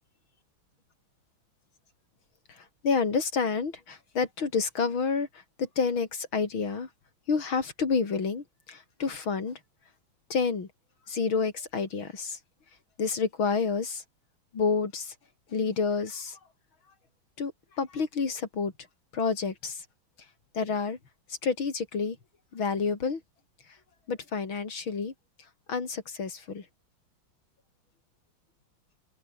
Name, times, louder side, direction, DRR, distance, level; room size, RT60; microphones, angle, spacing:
voice 1, 2.5-6.9 7.3-9.6 10.3-10.7 11.1-12.4 13.0-14.0 14.5-15.1 15.5-16.4 17.4-17.5 17.8-18.7 19.1-19.9 20.5-21.0 21.3-22.2 22.5-23.2 24.1-25.1 25.7-26.7, left 5 dB, 85° left, 4.0 m, -29 dB
open air
omnidirectional pair, 2.2 m